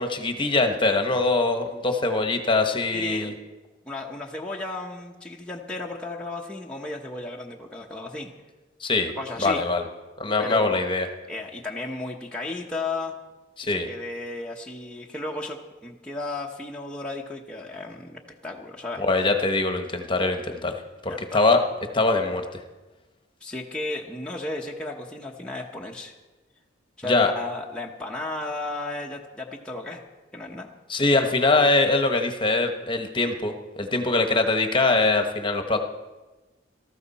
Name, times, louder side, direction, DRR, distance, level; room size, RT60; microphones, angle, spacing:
voice 1, 0.0-3.3 8.8-9.1 9.4-9.8 10.2-11.1 13.6-13.9 19.0-21.6 21.9-22.6 27.0-27.3 30.9-35.8, left 3 dB, 25° left, 5 dB, 1.1 m, -23 dB
voice 2, 2.9-3.4 3.8-8.3 9.2-9.6 10.4-10.8 11.3-13.2 13.6-19.0 21.1-21.4 23.4-26.1 27.0-30.0 30.3-30.7 30.9-31.0, left 2 dB, 5° left, -2 dB, 0.9 m, -34 dB
19.0 x 14.0 x 4.2 m, 1.2 s
head